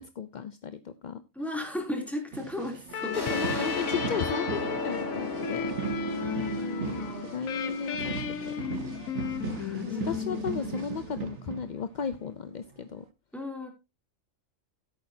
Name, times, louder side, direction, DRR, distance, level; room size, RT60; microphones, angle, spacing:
voice 1, 0.0-1.2 3.1-5.8 6.6-8.8 9.8-13.0, left 6 dB, 45° left, 11 dB, 0.6 m, -35 dB
voice 2, 1.3-3.2 3.5-3.8 5.8-7.4 9.5-10.8 13.3-13.7, left 1 dB, ahead, 3 dB, 2.9 m, -36 dB
sound 1, 2.3-12.2 12.7-13.0, right 7 dB, 60° right, 1.3 m, -39 dB
sound 2, 2.9-11.4, left 7 dB, 85° left, 1.3 m, -36 dB
sound 3, 3.1-8.4, left 2 dB, 15° left, 3.1 m, -35 dB
15.5 x 8.6 x 2.8 m, 0.25 s
omnidirectional pair, 1.4 m